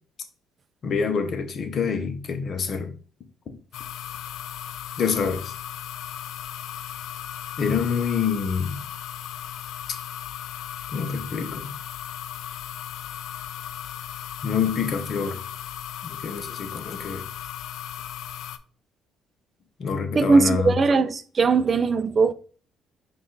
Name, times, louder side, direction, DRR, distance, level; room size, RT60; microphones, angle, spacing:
voice 1, 0.8-2.9 5.0-5.5 7.6-8.8 10.9-11.7 14.4-15.4 16.0-17.2 19.8-20.8, left 6 dB, 55° left, 0.8 m, -26 dB
sound 1, 3.7-18.6, left 10 dB, 75° left, 0.3 m, -36 dB
voice 2, 20.2-22.3, right 4 dB, 40° right, 0.4 m, -19 dB
4.9 x 2.4 x 3.9 m
supercardioid pair, 80°, 0 cm